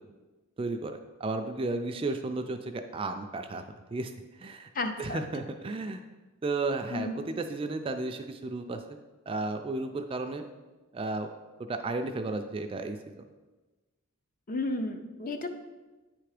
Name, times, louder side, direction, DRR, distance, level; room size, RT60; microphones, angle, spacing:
voice 1, 0.6-3.6 3.9-4.1 4.4-4.7 5.0-6.1 6.4-9.0 9.3-10.4 10.9-11.3 11.7-13.2, right 3 dB, 25° right, 6 dB, 0.3 m, -33 dB
voice 2, 4.7-5.2 6.9-7.1 14.5-15.5, left 2 dB, 40° left, 7 dB, 0.6 m, -32 dB
8.8 x 3.4 x 4.9 m, 1.2 s
head